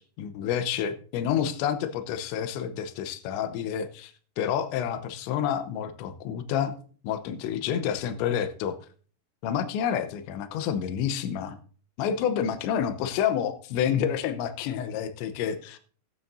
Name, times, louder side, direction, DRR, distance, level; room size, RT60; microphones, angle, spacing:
voice 1, 0.2-6.8 7.0-8.7 9.4-11.6 12.0-15.8, left 9 dB, 80° left, 8 dB, 3.1 m, -29 dB
19.0 x 8.7 x 2.7 m, 0.42 s
omnidirectional pair, 5.4 m